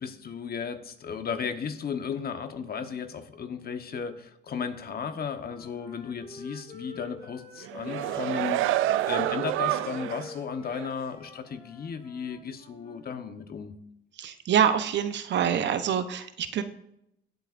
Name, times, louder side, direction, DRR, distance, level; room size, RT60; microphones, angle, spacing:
voice 1, 0.0-13.7, left 6 dB, 50° left, 8 dB, 1.1 m, -35 dB
Wind instrument woodwind instrument, 5.2-8.6 8.9-13.2, left 3 dB, 30° left, 2.9 m, -47 dB
sound 1, 7.6-10.3 10.7-10.9, right 14 dB, 85° right, 0.4 m, -28 dB
voice 2, 14.2-16.6, right 8 dB, 65° right, 10 dB, 0.8 m, -25 dB
17.5 x 8.0 x 2.5 m, 0.79 s
cardioid pair, 90°, 20 cm